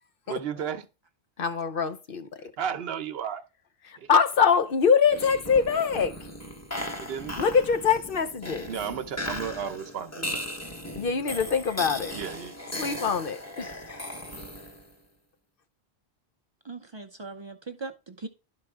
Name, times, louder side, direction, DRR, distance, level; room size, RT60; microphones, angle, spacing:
voice 1, 0.3-0.8 2.6-3.4 4.0-4.1 7.0-7.3 8.7-10.4 12.1-12.5, right 8 dB, 75° right, 0.9 m, -33 dB
voice 2, 1.4-2.3 3.8-6.1 7.4-8.7 11.0-12.2 12.8-14.0, left 6 dB, 60° left, 1.0 m, -24 dB
sound 1, 5.0-14.9, left 1 dB, 15° left, 1.0 m, -37 dB
voice 3, 16.7-18.3, right 3 dB, 35° right, 0.5 m, -39 dB
11.5 x 4.7 x 3.5 m
omnidirectional pair, 1.1 m